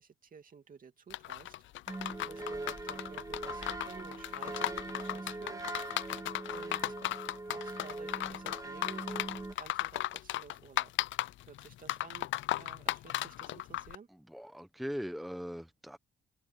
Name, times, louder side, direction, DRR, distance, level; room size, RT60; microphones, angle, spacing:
voice 1, 0.0-1.5 2.2-5.6 6.5-7.0 7.5-9.2 9.6-10.9 11.5-14.1, right 6 dB, 45° right, 2.6 m, -53 dB
sound 1, 1.1-14.0, left 15 dB, 75° left, 0.5 m, -36 dB
sound 2, 1.9-9.5, right 2 dB, 15° right, 1.8 m, -41 dB
voice 2, 14.1-16.0, equal, ahead, 1.0 m, -40 dB
cardioid pair, 90°, 20 cm